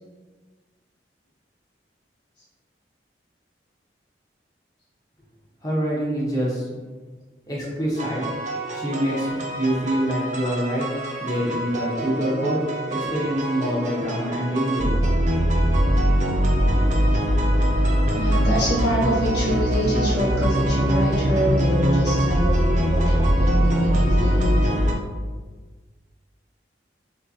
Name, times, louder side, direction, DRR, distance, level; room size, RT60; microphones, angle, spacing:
voice 1, 5.6-6.7 7.5-8.3 8.7-10.9 11.2-12.6 12.9-14.9, equal, 20° left, -6 dB, 1.1 m, -25 dB
sound 1, 8.0-24.9, equal, 45° right, 0.6 m, -22 dB
voice 2, 18.1-24.6, equal, 70° left, -8 dB, 1.3 m, -25 dB
6.5 x 2.4 x 2.8 m, 1.4 s
head